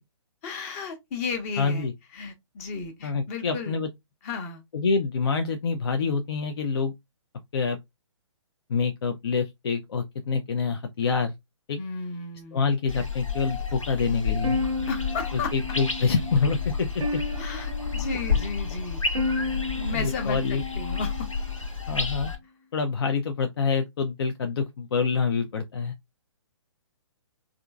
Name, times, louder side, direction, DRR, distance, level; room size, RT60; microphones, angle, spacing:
voice 1, 0.4-3.8 4.2-4.6 11.8-12.6 14.9-15.5 17.4-19.0 19.7-21.3, left 4 dB, 30° left, 0.8 m, -34 dB
voice 2, 1.6-1.9 3.0-3.9 4.7-6.9 7.5-7.8 8.7-11.3 11.7-11.8 12.5-14.6 15.3-17.0 19.9-20.6 21.9-22.3 22.7-25.9, left 5 dB, 55° left, 0.4 m, -26 dB
sound 1, 12.9-22.4, left 5 dB, 85° left, 1.0 m, -30 dB
sound 2, 14.4-21.6, left 2 dB, 80° right, 0.6 m, -33 dB
3.5 x 2.5 x 2.3 m
figure-of-eight pair, 130°, 16 cm